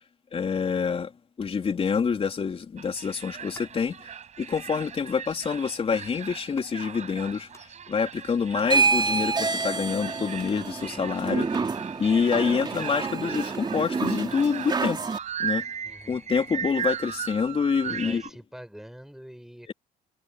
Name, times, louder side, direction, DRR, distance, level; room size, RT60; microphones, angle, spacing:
voice 1, 0.3-1.1 1.4-4.1 4.4-11.7 12.0-15.0 15.4-15.7 16.1-18.2, left 6 dB, 35° left, 3.6 m, -27 dB
sound 1, 2.8-18.3, right 8 dB, 45° right, 6.4 m, -37 dB
sound 2, 3.3-3.7 4.3-4.7 5.3-5.6 6.4-7.0 7.3-7.7 8.3-8.8 9.3-9.9 10.3-10.7 11.3-11.8 12.3-12.9 13.3-14.1 14.3-14.9, left 3 dB, 15° left, 7.7 m, -54 dB
sound 3, 8.6-15.2, right 4 dB, 25° right, 3.5 m, -28 dB
voice 2, 15.8-16.2 17.8-19.7, equal, ahead, 6.2 m, -45 dB
cardioid pair, 110°, 17 cm